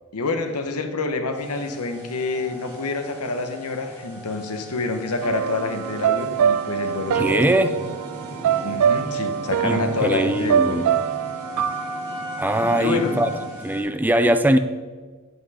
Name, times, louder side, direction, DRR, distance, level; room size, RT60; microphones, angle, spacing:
voice 1, 0.1-7.5 8.6-10.9 12.8-13.1, left 3 dB, 85° left, 7 dB, 1.0 m, -27 dB
sound 1, 1.3-13.8, equal, 10° left, 3.3 m, -37 dB
sound 2, 5.2-13.5, right 8 dB, 85° right, 0.3 m, -25 dB
voice 2, 7.1-7.7 9.6-10.9 12.4-13.3 13.6-14.6, right 1 dB, 10° right, 9 dB, 0.5 m, -21 dB
8.2 x 7.9 x 4.9 m, 1.4 s
head